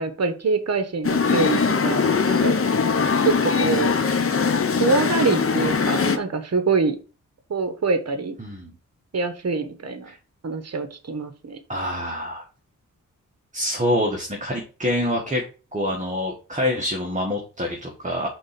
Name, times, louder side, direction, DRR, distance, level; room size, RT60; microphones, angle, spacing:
voice 1, 0.0-2.5 3.2-3.9 4.8-7.0 7.5-8.4 9.1-10.1 10.4-11.6, right 4 dB, 55° right, 9 dB, 1.2 m, -25 dB
sound 1, 1.0-6.2, left 5 dB, 45° left, 0.9 m, -21 dB
voice 2, 8.4-8.7 10.0-10.2 11.7-12.4 13.5-15.4 15.7-18.3, left 1 dB, 25° right, 0 dB, 1.6 m, -26 dB
5.1 x 3.9 x 5.9 m, 0.35 s
cardioid pair, 60°, 32 cm